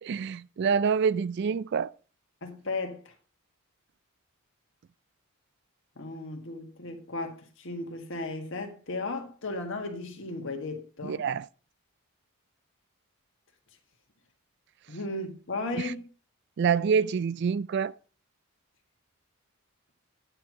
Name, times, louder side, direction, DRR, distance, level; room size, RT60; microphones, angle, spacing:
voice 1, 0.0-1.9 11.0-11.5 15.8-15.9 16.6-17.9, right 6 dB, 50° right, 0.3 m, -26 dB
voice 2, 2.4-3.1 6.0-11.3 14.9-16.1, left 2 dB, 60° left, 1.7 m, -35 dB
9.8 x 4.6 x 5.9 m
head